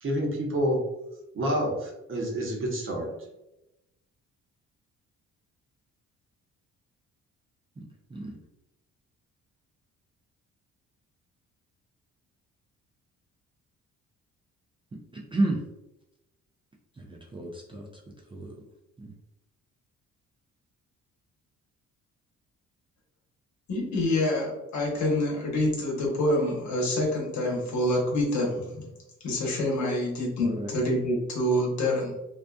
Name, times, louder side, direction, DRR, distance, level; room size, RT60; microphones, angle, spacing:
voice 1, 0.0-0.8 1.3-3.1, equal, 45° right, -1 dB, 0.8 m, -28 dB
voice 2, 7.8-8.4 14.9-15.6 16.9-18.0 18.3-18.6 19.0-19.1 30.4-30.7, right 2 dB, 15° right, -2 dB, 0.4 m, -32 dB
voice 3, 23.7-28.9 29.2-32.1, left 1 dB, 70° left, -2 dB, 0.9 m, -26 dB
2.6 x 2.3 x 2.2 m, 0.92 s
cardioid pair, 90°, 30 cm